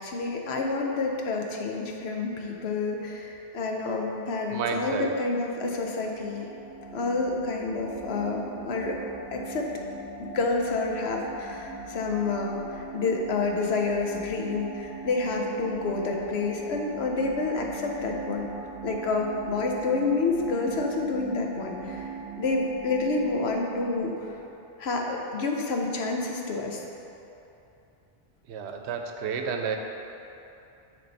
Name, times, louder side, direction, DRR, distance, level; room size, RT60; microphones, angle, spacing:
voice 1, 0.0-6.5 6.9-9.0 9.3-9.7 10.2-18.5 18.8-24.3 24.8-26.8, left 3 dB, 75° left, 1 dB, 1.0 m, -29 dB
voice 2, 4.5-5.1 28.5-29.8, right 6 dB, 85° right, 4 dB, 0.9 m, -30 dB
sound 1, 5.6-24.5, right 4 dB, 15° right, 0.7 m, -40 dB
9.5 x 3.6 x 4.0 m, 2.9 s
omnidirectional pair, 1.1 m